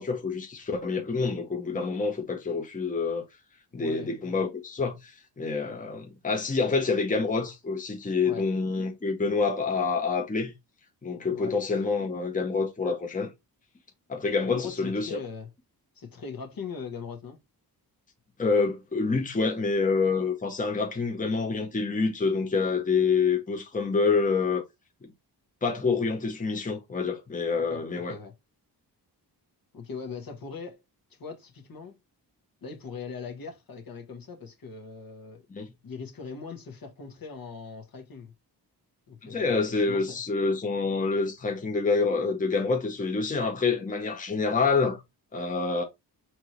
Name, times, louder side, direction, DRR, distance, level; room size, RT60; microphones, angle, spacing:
voice 1, 0.0-3.2 3.7-10.5 11.0-13.3 14.1-15.2 18.4-24.6 25.6-28.2 35.5-35.7 39.2-45.0 45.3-45.8, left 4 dB, 20° left, 0.9 m, -27 dB
voice 2, 3.7-4.4 8.2-8.5 11.3-11.5 14.4-15.5 15.9-17.4 27.5-28.3 29.7-30.8 31.1-32.0 32.6-35.4 35.8-38.3 39.1-40.2, left 5 dB, 60° left, 1.4 m, -40 dB
4.4 x 3.0 x 3.1 m
wide cardioid pair, 100°, 40 cm